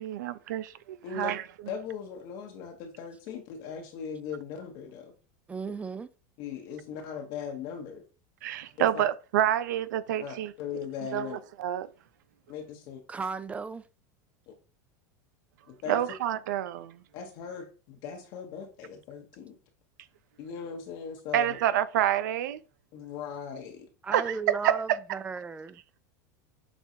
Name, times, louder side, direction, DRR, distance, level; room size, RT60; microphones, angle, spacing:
voice 1, 0.0-1.4 8.4-10.5 11.1-11.9 15.9-17.0 21.3-22.6 24.1-24.4 24.6-24.7, right 11 dB, 80° right, 0.4 m, -28 dB
voice 2, 1.7-5.1 6.4-8.0 8.8-9.0 10.2-11.4 12.5-13.0 14.5-14.6 15.7-16.0 17.1-19.6 20.4-21.6 22.9-23.9, left 7 dB, 60° left, 0.9 m, -39 dB
voice 3, 5.5-6.1 13.1-13.8 24.0-25.8, right 5 dB, 15° right, 0.3 m, -35 dB
6.1 x 2.4 x 2.7 m
supercardioid pair, 120°, 10 cm